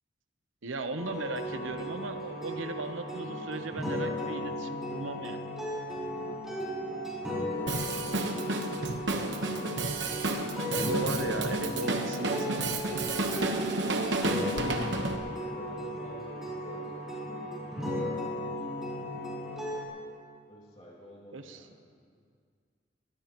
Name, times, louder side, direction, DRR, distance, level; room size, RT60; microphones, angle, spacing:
voice 1, 0.6-5.5 9.8-9.9 10.7-12.8 21.3-21.7, right 3 dB, 90° right, 8 dB, 0.9 m, -37 dB
sound 1, 1.0-19.8, left 1 dB, ahead, 4.3 m, -36 dB
voice 2, 7.5-8.2 9.0-9.8 14.5-17.0 20.5-21.7, equal, 30° left, -4 dB, 2.5 m, -49 dB
Drum kit, 7.7-15.2, right 2 dB, 65° right, 1.1 m, -31 dB
23.0 x 16.0 x 3.1 m, 2.1 s
head